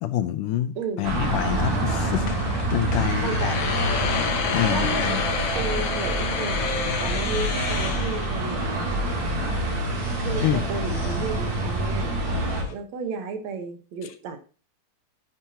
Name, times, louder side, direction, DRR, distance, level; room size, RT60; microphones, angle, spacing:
voice 1, 0.0-3.6 4.5-5.2 10.4-10.6 14.0-14.1, left 12 dB, 80° left, 1.9 m, -27 dB
voice 2, 0.8-1.1 3.0-3.7 4.6-5.2 5.6-9.0 10.2-12.1 12.7-14.4, right 5 dB, 60° right, 2.1 m, -33 dB
sound 1, 1.0-12.6, right 1 dB, 85° right, 4.5 m, -27 dB
sound 2, 1.6-12.7, left 5 dB, 60° left, 1.3 m, -31 dB
9.9 x 9.5 x 2.8 m
omnidirectional pair, 4.1 m